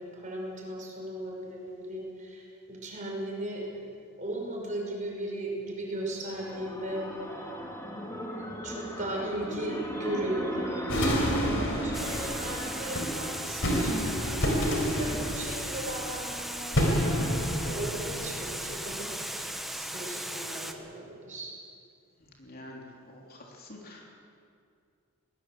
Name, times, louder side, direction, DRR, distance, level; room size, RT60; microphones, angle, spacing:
voice 1, 0.0-7.1 8.6-21.5, right 1 dB, 35° right, -1 dB, 5.8 m, -37 dB
sound 1, 5.9-14.7, equal, 15° left, 2.4 m, -39 dB
sound 2, 10.9-19.1, equal, 60° left, 4.3 m, -30 dB
Water, 11.9-20.7, right 1 dB, ahead, 1.1 m, -37 dB
voice 2, 22.4-24.1, left 1 dB, 40° left, -1 dB, 3.3 m, -47 dB
22.0 x 19.5 x 7.9 m, 2.3 s
head